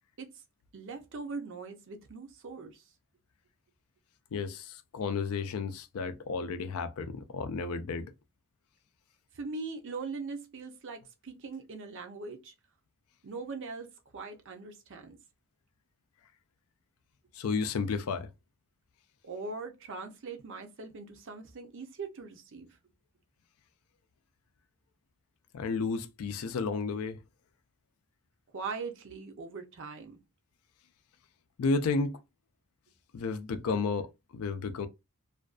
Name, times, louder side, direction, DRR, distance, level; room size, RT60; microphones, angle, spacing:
voice 1, 0.7-2.8 9.3-12.5 13.2-13.9 14.1-15.2 19.2-22.7 28.5-30.2, right 4 dB, 60° right, 0.5 m, -41 dB
voice 2, 4.3-8.1 17.3-18.3 25.5-27.2 31.6-32.2 33.1-34.9, left 4 dB, 75° left, 0.4 m, -32 dB
2.4 x 2.2 x 2.4 m
head